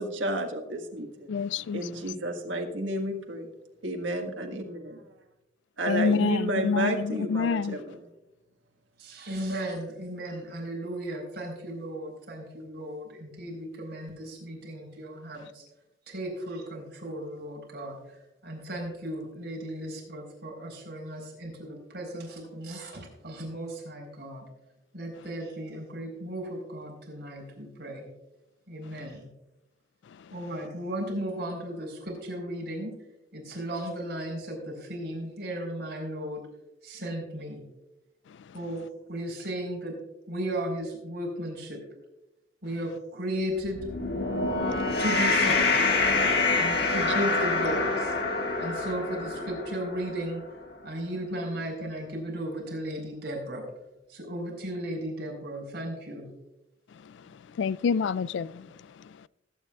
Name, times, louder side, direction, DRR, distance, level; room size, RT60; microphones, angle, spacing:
voice 1, 0.0-1.4 1.7-3.5 3.8-4.9 5.8-8.0 46.5-46.6, right 1 dB, 90° right, 1.6 m, -31 dB
voice 2, 1.3-1.8 5.9-7.8 57.6-58.7, left 5 dB, 75° left, 0.3 m, -27 dB
voice 3, 9.0-15.6 16.1-18.0 18.4-24.4 24.9-28.1 28.7-29.3 30.3-33.0 33.3-36.4 36.8-37.6 38.5-38.8 39.1-39.9 40.3-41.8 42.6-43.8 45.0-45.7 46.6-48.1 48.6-50.4 50.8-53.7 54.1-56.3, right 1 dB, 60° right, 4.4 m, -35 dB
sound 1, 43.7-50.2, left 3 dB, 55° left, 1.7 m, -26 dB
20.0 x 9.1 x 2.4 m
head